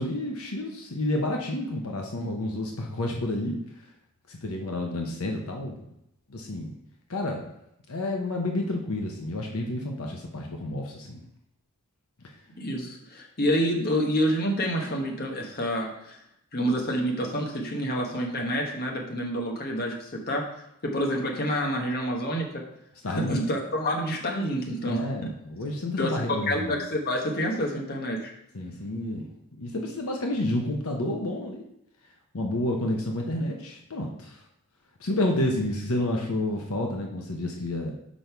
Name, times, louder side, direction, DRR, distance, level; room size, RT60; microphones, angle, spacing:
voice 1, 0.0-3.6 4.3-5.8 6.3-6.7 7.1-7.5 7.9-11.2 23.0-23.4 24.8-26.7 28.5-29.2 29.6-31.7 32.3-34.4 35.0-37.9, left 1 dB, 75° left, 2 dB, 0.9 m, -30 dB
voice 2, 12.6-16.2 16.5-20.4 20.8-22.6 23.1-25.3 26.0-28.3, equal, 45° left, 1 dB, 1.2 m, -28 dB
6.2 x 5.3 x 4.6 m, 0.78 s
head